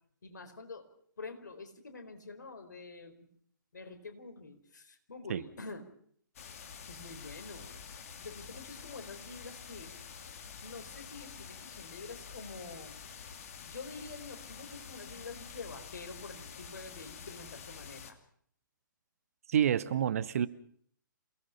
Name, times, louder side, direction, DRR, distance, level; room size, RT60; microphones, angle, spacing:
voice 1, 0.2-0.9 1.2-3.3 3.7-5.9 6.9-7.8 8.2-9.9 10.6-13.0 13.7-18.2, left 3 dB, 60° left, 7 dB, 4.5 m, -47 dB
sound 1, 6.4-18.1, left 6 dB, 40° left, 2.5 m, -48 dB
voice 2, 19.5-20.5, right 9 dB, 45° right, 17 dB, 0.9 m, -28 dB
28.0 x 19.0 x 5.8 m, 0.63 s
figure-of-eight pair, 125°, 11 cm